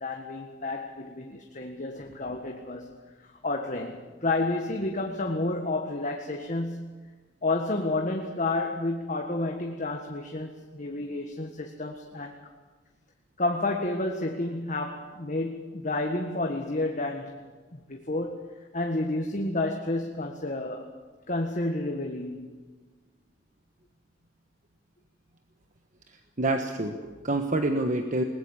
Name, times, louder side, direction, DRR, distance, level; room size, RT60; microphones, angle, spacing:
voice 1, 0.0-3.0 3.2-6.9 7.4-12.4 13.4-17.4 17.7-18.5 18.7-20.9 21.3-22.6, left 2 dB, 45° left, 3 dB, 1.6 m, -30 dB
voice 2, 26.4-28.2, right 2 dB, 45° right, 5 dB, 1.3 m, -27 dB
21.0 x 20.0 x 7.4 m, 1.4 s
head